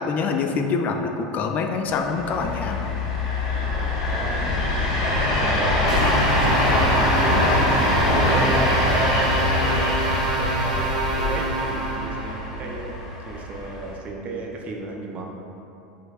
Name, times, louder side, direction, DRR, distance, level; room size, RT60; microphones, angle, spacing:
voice 1, 0.0-2.9, left 4 dB, 40° left, 4 dB, 0.4 m, -25 dB
sound 1, 2.0-13.9, left 2 dB, 80° left, 1.4 m, -23 dB
voice 2, 4.0-7.7 8.1-10.0 10.4-13.0 13.3-15.2, right 2 dB, 40° right, 0 dB, 0.7 m, -33 dB
sound 2, 5.9-12.4, right 3 dB, 90° right, 0.8 m, -27 dB
5.3 x 3.8 x 2.4 m, 2.9 s
hypercardioid pair, 90°, 4 cm